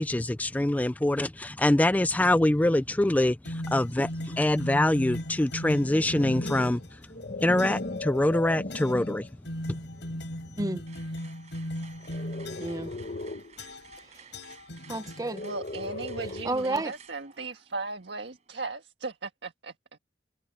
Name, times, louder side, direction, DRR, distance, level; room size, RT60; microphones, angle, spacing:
voice 1, 0.0-3.4 3.7-4.1 4.4-6.8 7.4-9.2, left 1 dB, 10° left, 0.3 m, -24 dB
sound 1, 3.5-6.9 7.6-8.0 8.7-9.1 9.5-12.9 13.6-14.0 14.3-15.7, left 1 dB, 80° left, 4.9 m, -38 dB
sound 2, 5.7-9.3 10.0-10.2 12.0-13.5 15.2-16.7, left 2 dB, 50° left, 1.1 m, -37 dB
sound 3, 10.9-18.8, right 7 dB, 40° right, 6.0 m, -55 dB
voice 2, 12.6-12.9 14.1-14.3 14.9-15.4 16.4-16.9, right 2 dB, 20° right, 0.8 m, -31 dB
voice 3, 15.4-20.0, right 3 dB, 80° right, 1.6 m, -37 dB
head